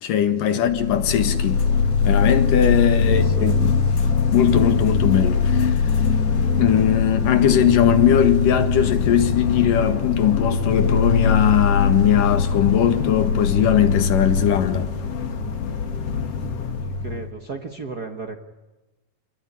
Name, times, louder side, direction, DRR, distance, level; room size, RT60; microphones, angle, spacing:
voice 1, 0.0-1.6 2.0-3.7 4.3-5.9 6.6-14.9, left 9 dB, 85° left, 3.3 m, -20 dB
sound 1, 0.7-17.3, left 5 dB, 50° left, 2.9 m, -21 dB
voice 2, 3.1-3.7 17.0-18.4, right 4 dB, 50° right, 1.2 m, -34 dB
27.5 x 20.5 x 9.9 m
omnidirectional pair, 3.7 m